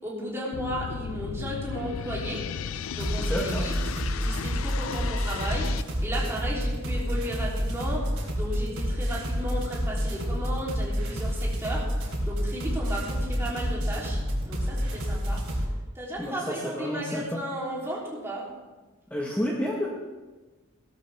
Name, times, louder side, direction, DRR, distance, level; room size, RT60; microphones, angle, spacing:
voice 1, 0.0-2.4 2.9-3.8 4.2-14.2 14.4-15.4 15.9-18.5, right 1 dB, 15° right, -5 dB, 3.3 m, -34 dB
sound 1, 0.5-5.8, left 7 dB, 75° left, 0.4 m, -35 dB
sound 2, 3.0-15.7, equal, 65° right, 3.8 m, -29 dB
voice 2, 3.2-3.7 16.2-17.4 19.1-19.9, equal, 10° left, -3 dB, 1.4 m, -30 dB
17.0 x 12.5 x 3.5 m, 1.2 s
head